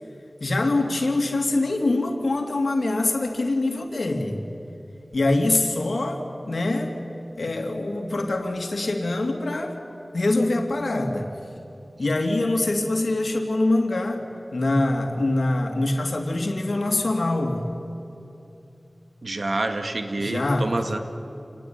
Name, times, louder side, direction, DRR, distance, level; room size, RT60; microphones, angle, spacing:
voice 1, 0.4-4.4 5.1-6.9 7.4-9.8 10.1-11.3 12.0-14.2 14.5-17.6 20.2-20.7, left 2 dB, 85° left, 3 dB, 2.9 m, -24 dB
voice 2, 19.2-21.0, right 2 dB, 75° right, 6 dB, 2.1 m, -27 dB
28.0 x 19.5 x 9.8 m, 2.8 s
wide cardioid pair, 55°, 0 cm